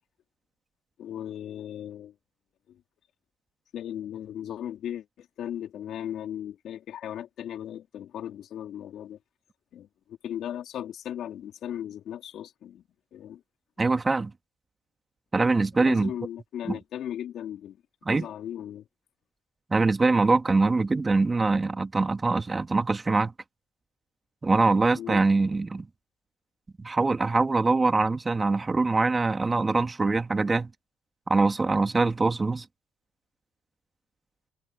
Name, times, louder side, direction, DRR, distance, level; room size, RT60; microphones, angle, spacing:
voice 1, 1.0-2.1 2.7-2.8 3.7-9.2 9.7-12.8 13.1-13.4 15.8-17.8 18.1-18.9 24.9-25.2, left 10 dB, 65° left, 4.2 m, -37 dB
voice 2, 13.8-14.3 15.3-16.1 16.7-16.8 18.0-18.3 19.7-23.3 24.4-25.9 26.8-30.7 31.3-32.6, right 3 dB, 25° right, 2.4 m, -23 dB
hypercardioid pair, 60°, 0 cm